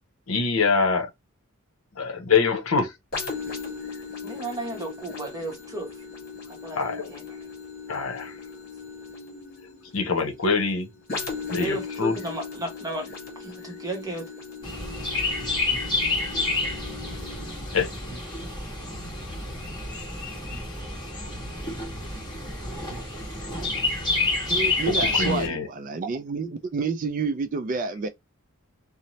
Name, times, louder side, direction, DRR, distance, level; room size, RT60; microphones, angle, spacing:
voice 1, 0.3-1.1 2.0-2.9 6.7-7.1 7.9-8.3 9.9-10.9 11.5-12.1 17.7-17.9 25.1-25.7, left 5 dB, 70° left, 0.7 m, -24 dB
sound 1, 3.1-20.6 21.2-21.3, left 4 dB, 50° left, 1.3 m, -39 dB
voice 2, 4.2-6.0 6.5-7.4 11.6-13.1 13.4-14.3, right 1 dB, 15° right, 0.8 m, -34 dB
Chirp tweet, 14.6-25.5, left 3 dB, 20° left, 1.2 m, -29 dB
Bass guitar, 15.4-24.9, equal, 90° right, 0.8 m, -46 dB
voice 3, 24.5-28.1, right 4 dB, 40° right, 0.3 m, -29 dB
2.7 x 2.0 x 2.9 m
head